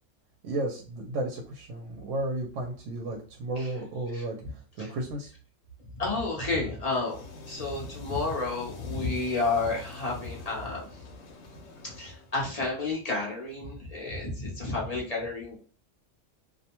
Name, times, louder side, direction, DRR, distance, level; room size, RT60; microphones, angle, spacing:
voice 1, 0.4-4.4 4.8-5.3, right 2 dB, 85° right, 2 dB, 0.9 m, -33 dB
voice 2, 4.1-4.5 4.8-4.9 6.0-7.2 7.5-10.9 11.8-15.6, left 3 dB, 40° left, -3 dB, 0.7 m, -31 dB
sound 1, 7.0-12.4, left 3 dB, 90° left, 1.0 m, -46 dB
2.5 x 2.1 x 2.8 m, 0.39 s
omnidirectional pair, 1.3 m